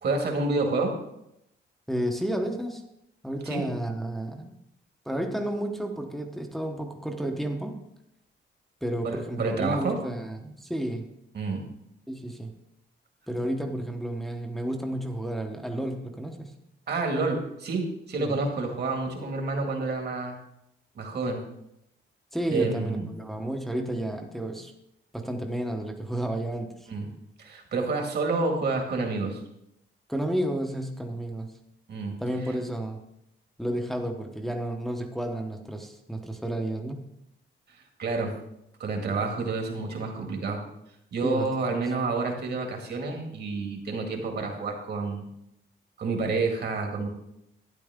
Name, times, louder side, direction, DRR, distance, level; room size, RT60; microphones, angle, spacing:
voice 1, 0.0-0.9 3.5-3.6 9.0-10.0 11.3-11.6 16.9-20.3 21.0-21.4 22.5-23.1 26.9-27.1 27.4-29.4 31.9-32.1 38.0-38.3 38.8-40.6 41.1-45.2 46.0-47.1, right 3 dB, 55° right, 3 dB, 1.9 m, -29 dB
voice 2, 1.9-2.8 3.2-4.5 5.0-7.8 8.8-11.1 12.1-12.5 13.3-16.5 18.2-18.4 22.3-24.7 25.1-26.9 30.1-31.5 32.2-33.0 33.6-37.1 41.2-41.5, right 1 dB, ahead, 3 dB, 0.9 m, -31 dB
12.0 x 10.0 x 3.6 m, 0.80 s
wide cardioid pair, 165°, 21 cm